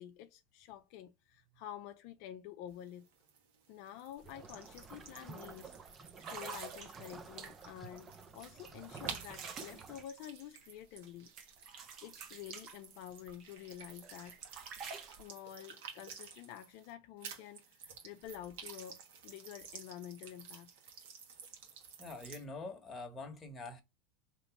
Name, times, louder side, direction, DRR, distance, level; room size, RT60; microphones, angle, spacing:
voice 1, 0.0-3.1 3.7-5.7 6.2-11.3 11.7-14.4 15.1-20.7, left 11 dB, 60° left, 0.4 m, -49 dB
sound 1, 2.7-16.9 17.2-22.4, right 6 dB, 75° right, 1.3 m, -52 dB
sound 2, 4.2-10.0, right 5 dB, 20° right, 0.6 m, -52 dB
sound 3, 4.2-4.3 4.7-5.0 5.6-5.7 6.2-7.8 8.4-11.1 11.4-13.5 13.9-15.2, right 5 dB, 40° right, 0.9 m, -49 dB
voice 2, 22.0-23.8, left 3 dB, 20° left, 1.1 m, -45 dB
4.0 x 3.0 x 3.5 m
supercardioid pair, 120°, 0 cm